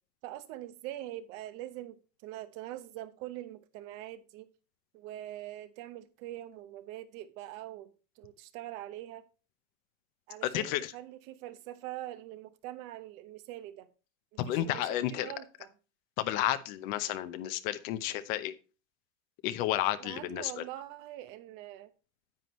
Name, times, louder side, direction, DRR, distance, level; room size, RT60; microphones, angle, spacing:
voice 1, 0.2-4.5 4.9-9.2 10.3-13.9 14.5-15.7 20.0-21.9, right 14 dB, 80° right, 1.0 m, -43 dB
voice 2, 10.4-10.9 14.4-15.3 16.2-18.5 19.4-20.6, left 13 dB, 85° left, 0.9 m, -31 dB
9.9 x 7.7 x 3.1 m
supercardioid pair, 105°, 40 cm